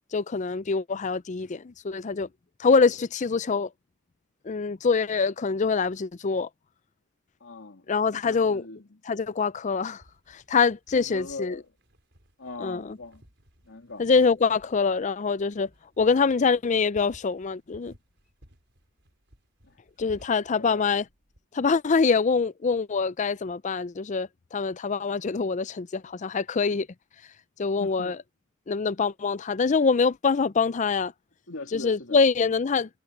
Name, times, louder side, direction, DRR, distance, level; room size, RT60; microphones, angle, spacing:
voice 1, 0.1-2.3 2.6-3.7 4.5-6.5 7.9-8.6 9.1-10.0 10.3-11.6 12.6-13.0 14.0-15.7 16.0-17.9 20.0-21.0 21.5-26.9 27.6-28.2 28.7-31.1 31.7-33.0, left 5 dB, 35° left, 0.5 m, -24 dB
voice 2, 7.4-9.0 10.9-11.7 12.4-13.2 13.6-14.0 19.6-19.8 20.6-21.0 27.8-28.2 31.5-32.2, left 3 dB, 70° left, 2.8 m, -41 dB
sound 1, 10.0-21.4, equal, 60° right, 5.6 m, -58 dB
head